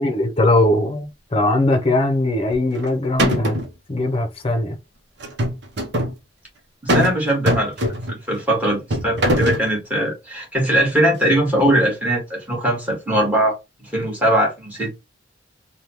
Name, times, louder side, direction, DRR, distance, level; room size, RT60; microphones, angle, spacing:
voice 1, 0.0-3.6 3.9-4.8, left 2 dB, 30° left, 0.7 m, -20 dB
sound 1, 2.5-2.9 3.2-3.7 5.2-6.1 6.9-7.2 7.5-8.2 8.9-9.7, equal, 65° right, 0.8 m, -21 dB
voice 2, 6.8-13.5 13.8-14.9, right 1 dB, 10° right, 1.6 m, -20 dB
3.6 x 2.3 x 2.9 m
head